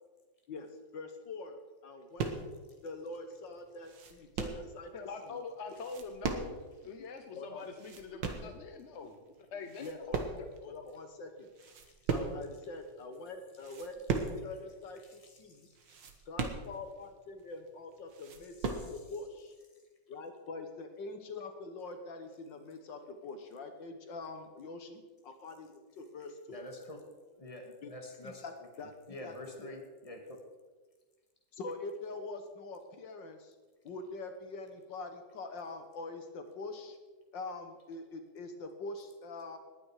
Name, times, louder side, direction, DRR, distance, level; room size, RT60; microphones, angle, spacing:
voice 1, 0.9-2.5 2.8-4.9 5.3-5.4 7.3-7.7 8.1-8.2 8.5-8.6 9.8-10.2 10.6-11.5 12.1-15.7 16.3-19.6 20.1-26.7 27.8-27.9 28.2-28.9 29.2-29.8 31.5-33.5 33.8-37.0 37.3-39.6, left 3 dB, 70° left, 7 dB, 1.9 m, -44 dB
sound 1, 2.2-2.6 3.1-3.2 3.6-4.7 5.7-6.8 7.0-7.1 7.6-8.5 9.1-9.4 9.6-10.7 11.0-11.1 11.5-12.5 13.0-13.2 13.6-14.5 14.7-14.8 15.2-15.3 15.7-17.0 17.5-17.6 17.9-18.9, right 5 dB, 70° right, 2.0 m, -37 dB
voice 2, 4.9-9.2 9.5-10.5, left 4 dB, 50° left, 6 dB, 0.9 m, -44 dB
voice 3, 26.5-27.0 27.4-28.4 29.1-30.2, left 1 dB, 20° left, 2 dB, 2.1 m, -46 dB
19.5 x 9.2 x 4.8 m, 1.3 s
omnidirectional pair, 2.1 m